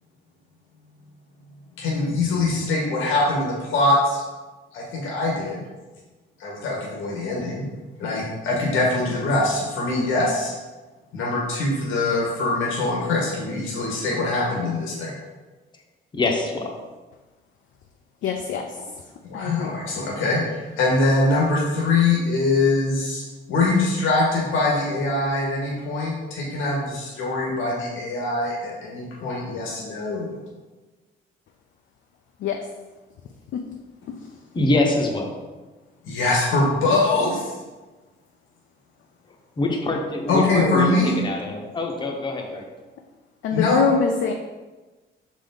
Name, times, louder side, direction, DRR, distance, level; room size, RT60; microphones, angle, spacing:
voice 1, 1.8-4.2 4.7-5.6 6.4-7.6 8.0-10.5 11.1-15.1 19.2-23.2 23.5-30.4 36.0-37.5 40.3-41.1 43.5-43.8, left 2 dB, 90° left, -3 dB, 1.6 m, -23 dB
voice 2, 16.1-16.7 34.5-35.3 39.6-42.6, left 2 dB, 25° left, 2 dB, 0.9 m, -24 dB
voice 3, 18.2-18.8 19.3-19.7 32.4-32.6 33.5-33.6 43.4-44.3, left 6 dB, 70° left, 3 dB, 0.6 m, -24 dB
6.5 x 5.1 x 3.9 m, 1.2 s
cardioid pair, 165°, 20 cm